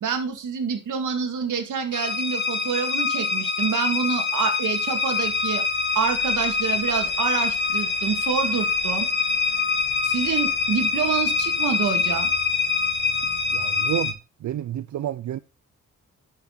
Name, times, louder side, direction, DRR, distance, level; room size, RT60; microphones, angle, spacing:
voice 1, 0.0-5.6 6.0-9.1 10.0-12.3, right 6 dB, 85° right, 2.1 m, -27 dB
sound 1, 1.9-14.1, left 4 dB, 35° left, 2.1 m, -25 dB
voice 2, 13.5-14.2 14.4-15.4, right 12 dB, 70° right, 0.5 m, -29 dB
11.5 x 6.3 x 3.9 m
cardioid pair, 90°, 30 cm